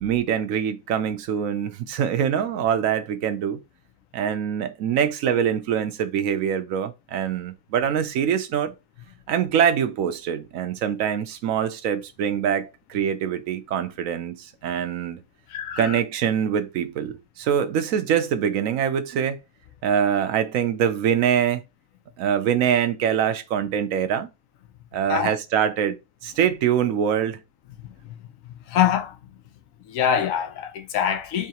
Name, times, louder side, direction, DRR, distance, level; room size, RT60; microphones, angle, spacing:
voice 1, 0.0-3.6 4.1-8.7 9.3-15.2 15.8-19.4 19.8-21.6 22.2-24.3 24.9-26.0 26.2-27.4, right 8 dB, 85° right, 1.0 m, -24 dB
voice 2, 15.5-16.0 25.1-25.3 28.7-29.2 29.9-31.5, left 9 dB, 80° left, 1.0 m, -24 dB
4.6 x 2.9 x 2.8 m
omnidirectional pair, 1.4 m